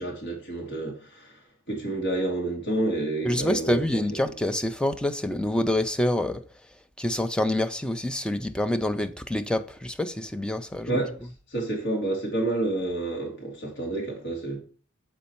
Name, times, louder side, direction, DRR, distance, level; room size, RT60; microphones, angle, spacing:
voice 1, 0.0-1.3 1.7-3.8 10.9-11.1 11.5-14.6, right 2 dB, 55° left, 1.7 m, -29 dB
voice 2, 3.2-6.4 7.0-11.0, left 1 dB, 5° left, 0.3 m, -26 dB
7.0 x 4.1 x 4.4 m
head